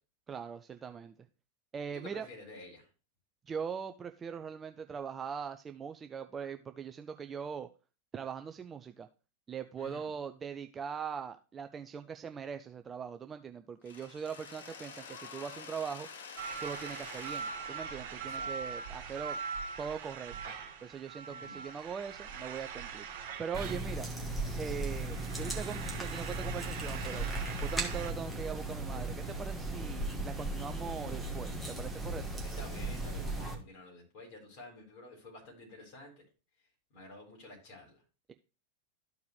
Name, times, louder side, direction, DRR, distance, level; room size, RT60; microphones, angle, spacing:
voice 1, 0.3-1.1 1.7-2.3 3.5-7.7 8.1-9.1 9.5-16.1 16.6-19.4 19.8-20.4 20.8-24.1 24.6-27.3 27.6-32.3, right 7 dB, 20° right, 8 dB, 0.4 m, -41 dB
voice 2, 1.9-2.9 9.8-10.1 18.2-18.5 21.3-21.7 32.6-36.2 36.9-38.0, left 2 dB, 45° left, 0 dB, 4.0 m, -50 dB
Mechanisms, 13.8-19.7, left 5 dB, 60° left, 0.9 m, -49 dB
sound 1, 16.4-28.1, right 6 dB, 55° right, 2.0 m, -42 dB
sound 2, 23.5-33.5, right 2 dB, ahead, 1.8 m, -37 dB
13.0 x 4.7 x 3.1 m, 0.34 s
figure-of-eight pair, 90°, 0 cm